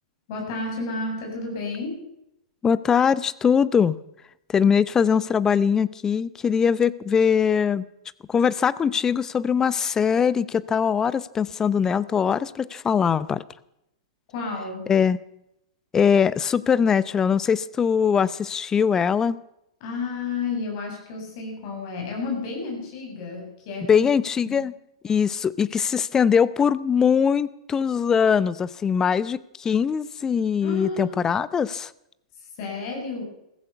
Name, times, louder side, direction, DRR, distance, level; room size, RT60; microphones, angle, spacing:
voice 1, 0.3-2.0 14.3-14.9 19.8-24.1 24.4-24.6 30.6-31.2 32.4-33.2, left 3 dB, 50° left, 1 dB, 7.6 m, -31 dB
voice 2, 2.6-3.9 4.5-7.9 8.3-13.4 14.9-15.2 15.9-19.4 23.9-24.7 25.0-31.9, left 7 dB, 20° left, 18 dB, 0.6 m, -21 dB
15.0 x 15.0 x 6.0 m, 0.82 s
hypercardioid pair, 110°, 3 cm